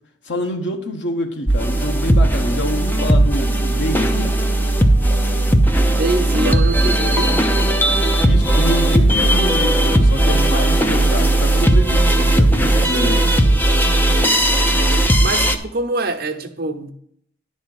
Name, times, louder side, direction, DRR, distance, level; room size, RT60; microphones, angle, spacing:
voice 1, 0.2-4.4 8.2-13.6, equal, 70° left, 1.1 m, -26 dB
sound 1, 1.5-15.6, right 1 dB, 10° left, 0.7 m, -16 dB
voice 2, 5.9-7.4 15.2-16.9, right 2 dB, 55° right, 1.0 m, -24 dB
10.5 x 4.3 x 7.7 m
head